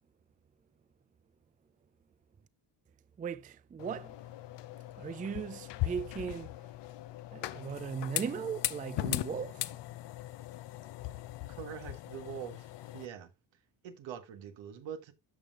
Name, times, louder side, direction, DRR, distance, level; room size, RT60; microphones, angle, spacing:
voice 1, 3.2-4.1 5.0-6.5 7.3-9.7, right 7 dB, 20° right, 0.4 m, -38 dB
sound 1, 3.8-13.1, left 15 dB, 70° left, 0.7 m, -39 dB
voice 2, 11.5-13.3 13.8-15.1, right 8 dB, 75° right, 1.5 m, -44 dB
13.0 x 5.6 x 2.4 m
supercardioid pair, 70°, 45 cm